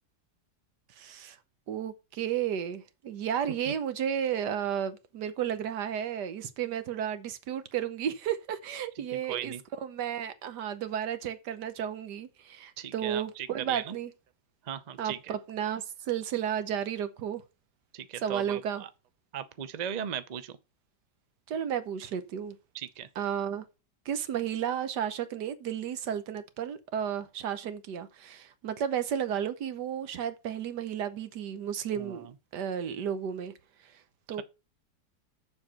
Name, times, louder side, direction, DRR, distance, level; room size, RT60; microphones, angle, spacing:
voice 1, 1.0-1.4 1.7-14.1 15.0-17.4 18.2-18.8 21.5-22.6 23.1-23.7 24.0-32.3 32.5-33.5 34.3-34.4, right 9 dB, 75° right, 1.5 m, -33 dB
voice 2, 9.1-9.6 12.8-14.0 14.7-15.2 17.9-18.9 19.3-20.6 22.7-23.1 32.0-32.2, right 9 dB, 55° right, 0.4 m, -37 dB
7.1 x 5.7 x 6.5 m
omnidirectional pair, 1.8 m